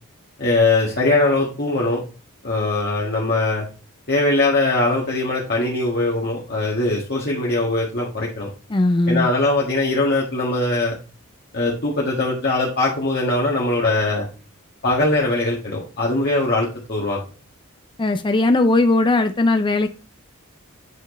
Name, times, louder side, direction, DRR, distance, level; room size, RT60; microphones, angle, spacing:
voice 1, 0.4-2.0 2.4-3.7 4.1-8.5 9.1-10.9 11.5-14.3 14.8-17.2, left 2 dB, 45° left, 1.6 m, -21 dB
voice 2, 8.7-9.3 18.0-19.9, left 2 dB, 20° left, 0.4 m, -18 dB
9.2 x 4.5 x 3.1 m
head